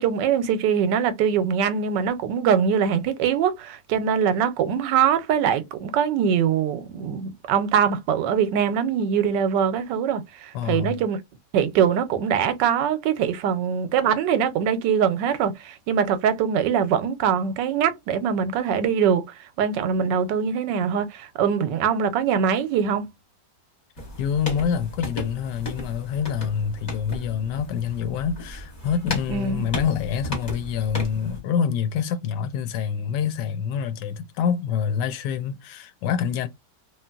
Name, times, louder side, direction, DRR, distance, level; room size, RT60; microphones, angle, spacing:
voice 1, 0.0-11.2 11.5-19.2 19.6-23.1 29.3-29.7, right 7 dB, 85° right, 1.3 m, -23 dB
voice 2, 10.5-11.0 24.2-36.5, left 7 dB, 80° left, 1.2 m, -26 dB
sound 1, 24.0-31.4, left 1 dB, 30° left, 1.1 m, -35 dB
3.1 x 2.7 x 2.3 m
omnidirectional pair, 1.8 m